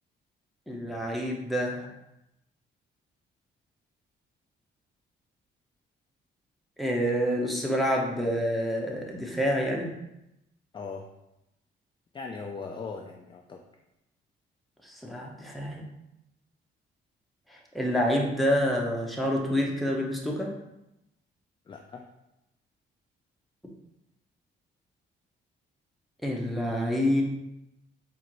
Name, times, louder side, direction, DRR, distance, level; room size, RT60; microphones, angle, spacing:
voice 1, 0.7-1.9 6.8-9.9 14.8-15.8 17.5-20.5 26.2-27.2, equal, ahead, -2 dB, 0.8 m, -27 dB
voice 2, 10.7-11.0 12.1-13.6 21.7-22.0, left 4 dB, 25° left, 2 dB, 0.3 m, -39 dB
4.3 x 2.6 x 3.0 m, 0.88 s
cardioid pair, 90°, 20 cm